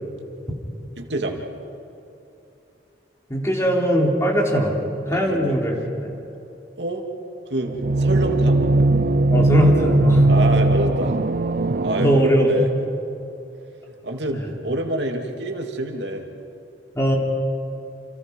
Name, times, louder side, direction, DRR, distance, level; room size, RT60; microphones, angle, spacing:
voice 1, 1.0-1.4 5.1-5.6 6.8-7.1 7.5-8.7 10.3-11.2 11.8-12.7 14.0-16.2, right 1 dB, 70° right, 3 dB, 2.7 m, -27 dB
voice 2, 3.3-4.8 5.1-5.8 9.3-10.3 12.0-12.5 14.3-14.5 17.0-17.2, equal, 15° left, -1 dB, 3.9 m, -20 dB
sound 1, 7.7-12.2, right 2 dB, 50° right, 0.6 m, -19 dB
29.0 x 29.0 x 5.5 m, 2.8 s
head